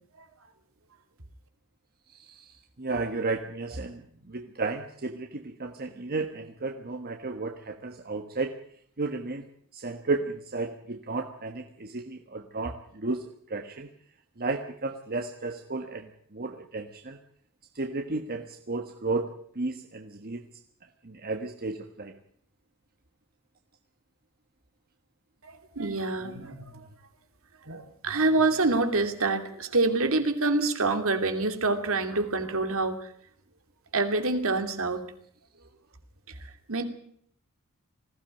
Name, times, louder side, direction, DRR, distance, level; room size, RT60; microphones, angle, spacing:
voice 1, 2.1-8.5 9.0-9.4 9.7-13.9 14.4-17.2 17.7-19.3 19.5-20.5 21.0-22.1, right 3 dB, 45° right, 5 dB, 1.4 m, -33 dB
voice 2, 25.4-26.9 27.6-33.1 33.9-35.0 36.4-36.8, right 3 dB, 65° right, 7 dB, 2.8 m, -27 dB
20.0 x 16.0 x 9.0 m, 0.65 s
head